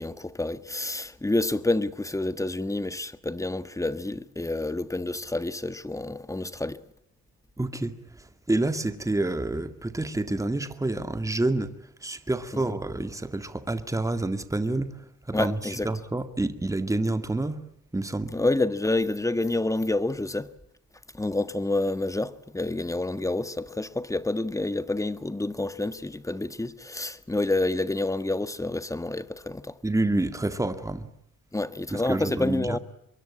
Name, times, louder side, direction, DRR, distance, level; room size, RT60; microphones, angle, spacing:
voice 1, 0.0-6.8 12.5-12.6 15.3-15.9 18.3-20.5 21.1-29.7 31.5-32.8, left 2 dB, 10° left, 1.5 m, -28 dB
voice 2, 7.6-7.9 8.5-11.7 12.0-14.9 15.3-17.6 17.9-18.3 29.8-31.1 31.9-32.8, right 2 dB, 10° right, 2.1 m, -28 dB
25.5 x 22.5 x 8.7 m
cardioid pair, 90°, 30 cm